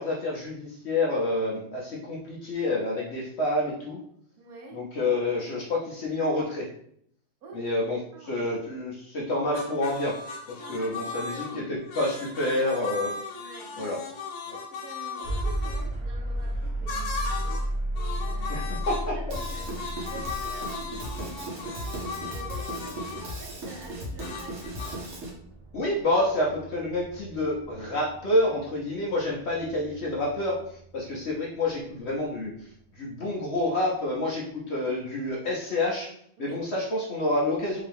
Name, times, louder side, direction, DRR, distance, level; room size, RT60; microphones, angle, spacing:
voice 1, 0.0-4.0 4.7-6.7 7.5-10.2 10.5-13.1 13.8-14.0 14.5-14.6 18.5-18.6 18.9-19.2 25.7-32.5 33.0-36.1 36.4-37.8, left 1 dB, 55° left, -3 dB, 0.8 m, -28 dB
voice 2, 4.4-4.9 7.4-8.5 10.5-11.8 13.3-13.7 14.7-17.7 18.2-18.8 19.2-19.7 20.1-21.9 22.2-24.7 34.2-34.3 36.4-36.6, right 3 dB, 70° right, 0 dB, 1.3 m, -46 dB
sound 1, 9.5-15.8 16.9-17.7 18.0-23.3 24.2-25.0, left 4 dB, 80° left, 1.3 m, -37 dB
sound 2, 15.2-31.2, right 1 dB, 30° right, 0.6 m, -35 dB
Drum kit / Drum, 19.3-25.3, right 1 dB, 50° right, 1.2 m, -37 dB
3.6 x 2.8 x 3.4 m, 0.66 s
omnidirectional pair, 1.7 m